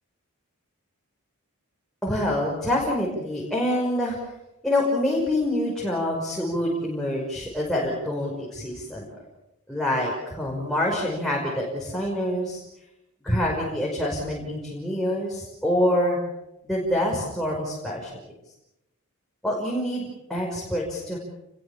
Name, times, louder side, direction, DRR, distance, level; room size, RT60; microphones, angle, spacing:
voice 1, 2.0-4.2 4.6-9.1 9.7-12.6 13.2-16.2 16.6-18.2 19.4-21.2, left 1 dB, ahead, -4 dB, 5.7 m, -26 dB
29.5 x 22.0 x 7.4 m, 0.90 s
head